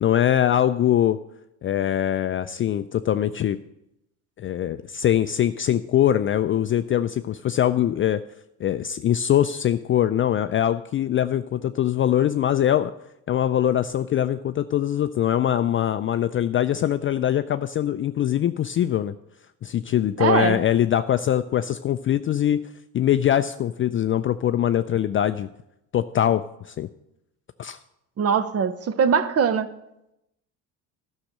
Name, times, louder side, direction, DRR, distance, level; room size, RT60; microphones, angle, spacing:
voice 1, 0.0-1.2 1.6-3.6 4.4-8.2 8.6-12.9 13.3-19.1 19.6-25.5 25.9-26.9 27.6-27.8, left 11 dB, 30° left, 11 dB, 0.4 m, -22 dB
voice 2, 20.2-20.6 28.2-29.7, right 6 dB, 35° right, 14 dB, 0.9 m, -21 dB
11.5 x 6.5 x 7.4 m, 0.85 s
supercardioid pair, 85°, 41 cm